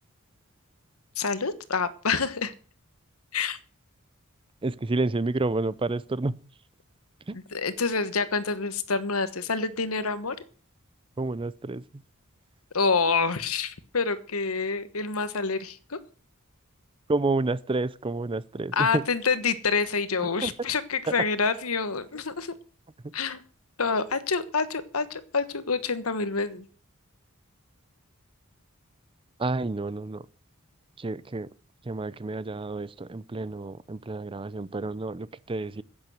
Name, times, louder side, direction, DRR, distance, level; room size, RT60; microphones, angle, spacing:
voice 1, 1.1-2.5 3.3-3.6 7.3-10.3 12.7-16.0 18.7-22.5 23.1-23.4 23.8-26.7, left 4 dB, 85° left, 1.3 m, -27 dB
voice 2, 4.6-6.4 7.3-7.4 11.2-12.0 17.1-19.1 20.4-20.5 21.1-21.2 29.4-30.3 31.0-31.5 31.8-35.8, right 2 dB, 25° right, 0.5 m, -29 dB
10.5 x 8.8 x 7.8 m
head